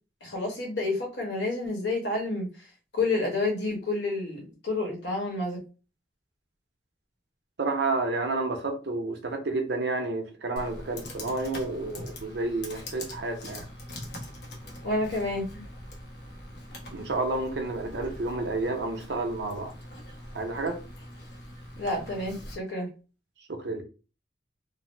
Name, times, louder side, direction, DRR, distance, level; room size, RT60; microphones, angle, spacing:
voice 1, 0.2-2.7 2.9-5.6 14.8-15.6 21.8-22.9, left 2 dB, 85° left, 1.3 m, -29 dB
voice 2, 7.6-13.7 16.9-19.7 20.3-20.8 23.5-23.8, right 2 dB, 75° right, 0.7 m, -30 dB
Computer keyboard, 10.6-22.5, left 1 dB, 70° left, 0.9 m, -43 dB
2.9 x 2.0 x 3.0 m
head